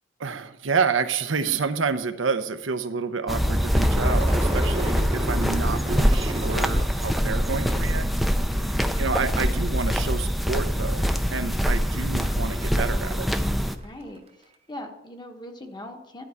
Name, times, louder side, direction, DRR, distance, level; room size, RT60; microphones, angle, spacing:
voice 1, 0.2-8.1 9.0-13.3, right 5 dB, 75° right, 9 dB, 0.7 m, -29 dB
sound 1, 3.3-13.8, equal, ahead, 0.5 m, -24 dB
Crowd / Fireworks, 3.7-9.1 9.4-10.0 10.3-13.8, right 2 dB, 30° right, 0.8 m, -36 dB
voice 2, 8.5-8.9 13.8-14.2 14.7-16.2, left 1 dB, 25° left, 4 dB, 1.1 m, -40 dB
12.0 x 4.6 x 8.3 m, 0.92 s
head